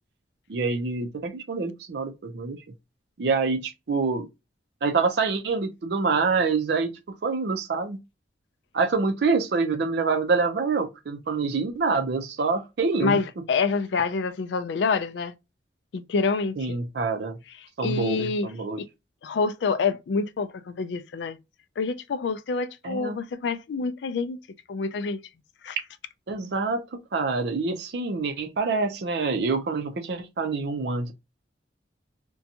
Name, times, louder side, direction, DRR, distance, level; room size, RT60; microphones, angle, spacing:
voice 1, 0.5-2.6 3.2-4.3 4.8-8.0 8.7-13.2 16.6-17.4 17.8-18.8 22.8-23.2 26.3-31.1, right 4 dB, 60° right, 0.5 m, -26 dB
voice 2, 13.0-15.3 15.9-16.8 17.8-18.5 18.8-18.9 19.2-21.4 21.8-24.4 24.7-25.2 25.6-25.8, left 4 dB, 70° left, 0.4 m, -27 dB
2.6 x 2.2 x 2.7 m
head